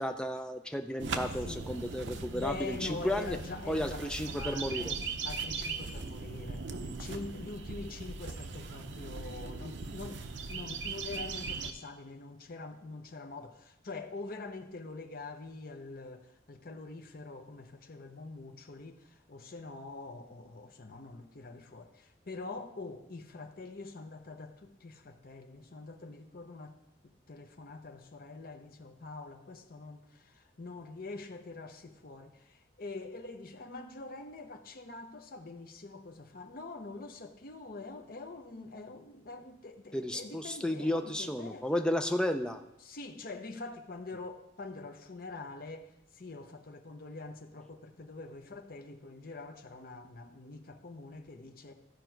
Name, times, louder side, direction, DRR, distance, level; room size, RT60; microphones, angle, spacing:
voice 1, 0.0-3.4 3.7-4.9 39.9-42.6, left 1 dB, 5° left, 0.5 m, -33 dB
sound 1, 1.0-11.7, right 4 dB, 80° right, 0.7 m, -39 dB
voice 2, 2.4-5.0 5.2-41.7 42.8-51.7, left 3 dB, 50° left, 0.8 m, -45 dB
14.0 x 5.1 x 4.6 m
head